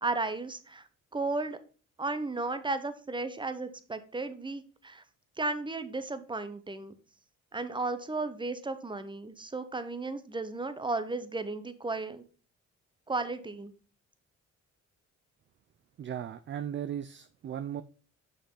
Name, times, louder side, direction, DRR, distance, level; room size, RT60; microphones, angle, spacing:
voice 1, 0.0-0.8 1.1-1.6 2.0-5.0 5.4-6.9 7.5-12.2 13.1-13.7, right 3 dB, 15° right, 0.8 m, -34 dB
voice 2, 16.0-17.8, right 9 dB, 40° right, 0.4 m, -37 dB
6.3 x 5.4 x 3.8 m
cardioid pair, 90°, 30 cm